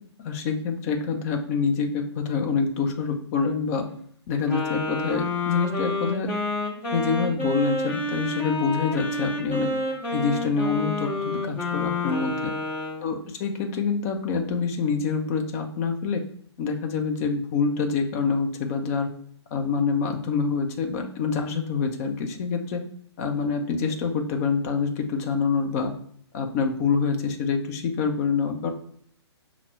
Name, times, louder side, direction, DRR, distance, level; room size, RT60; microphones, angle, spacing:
voice 1, 0.2-3.9 4.3-6.3 6.9-9.7 10.1-12.5 13.0-16.2 16.6-19.1 19.5-22.8 23.2-25.9 26.3-28.7, left 5 dB, 35° left, 3 dB, 0.6 m, -26 dB
Wind instrument woodwind instrument, 4.5-13.1, left 2 dB, 15° left, 0.9 m, -29 dB
5.8 x 2.0 x 4.3 m, 0.63 s
hypercardioid pair, 135°, 14 cm